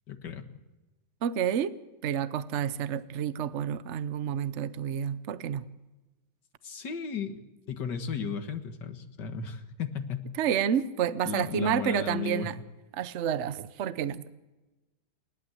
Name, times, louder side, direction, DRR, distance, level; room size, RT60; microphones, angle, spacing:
voice 1, 0.1-0.4 6.6-7.4 7.7-10.2 11.2-12.5, left 6 dB, 90° left, 7 dB, 2.3 m, -34 dB
voice 2, 1.2-1.7 2.0-5.7 10.4-12.5 12.9-14.3, right 9 dB, 50° right, 14 dB, 1.0 m, -29 dB
28.5 x 12.0 x 7.9 m, 1.1 s
omnidirectional pair, 1.8 m